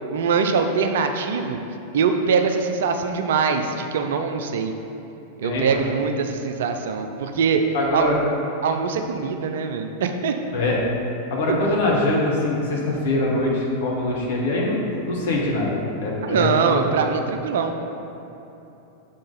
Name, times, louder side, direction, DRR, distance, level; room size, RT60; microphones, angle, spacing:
voice 1, 0.1-1.6 1.9-4.7 5.4-7.6 7.9-8.1 8.6-10.3 11.5-11.6 16.2-17.9, right 5 dB, 60° right, 6 dB, 0.4 m, -23 dB
voice 2, 7.7-8.2 10.5-10.8 11.3-16.9, left 2 dB, 55° left, -3 dB, 1.2 m, -23 dB
6.7 x 3.8 x 3.9 m, 3.0 s
figure-of-eight pair, 90°, 0 cm